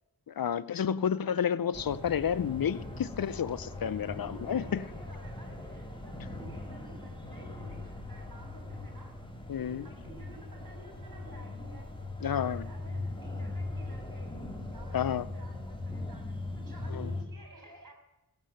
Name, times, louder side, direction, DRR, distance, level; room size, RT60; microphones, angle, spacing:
voice 1, 0.3-4.8 9.5-9.9 12.2-12.6 14.9-15.3 16.9-17.1, left 8 dB, 70° left, 17 dB, 0.5 m, -30 dB
voice 2, 0.9-1.4 4.1-9.2 9.6-11.9 12.2-17.9, right 2 dB, 65° right, 2 dB, 3.7 m, -53 dB
sound 1, 1.7-17.2, left 2 dB, 15° left, 1.8 m, -40 dB
16.5 x 7.5 x 6.4 m, 0.96 s
wide cardioid pair, 55°, 36 cm